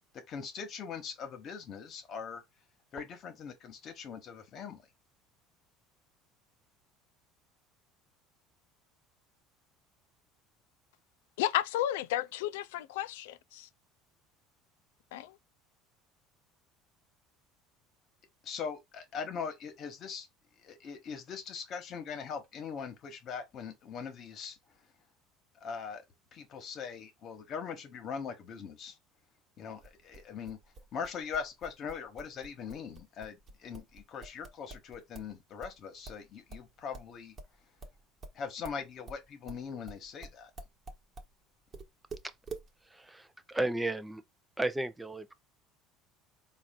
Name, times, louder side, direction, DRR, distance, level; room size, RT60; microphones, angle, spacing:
voice 1, 0.3-2.4 2.9-4.8 18.4-20.3 20.6-24.6 25.6-26.0 26.3-29.0 29.6-30.6 30.9-37.4 38.3-40.5, left 6 dB, 45° left, 1.2 m, -41 dB
voice 2, 11.4-13.7 15.1-15.4, left 12 dB, 90° left, 0.3 m, -32 dB
sound 1, 29.8-35.3 35.6-41.3 41.7-42.7, right 3 dB, 30° right, 1.3 m, -47 dB
voice 3, 42.9-44.2 44.6-45.3, right 2 dB, 10° right, 0.5 m, -33 dB
4.1 x 2.5 x 3.6 m
supercardioid pair, 105°, 0 cm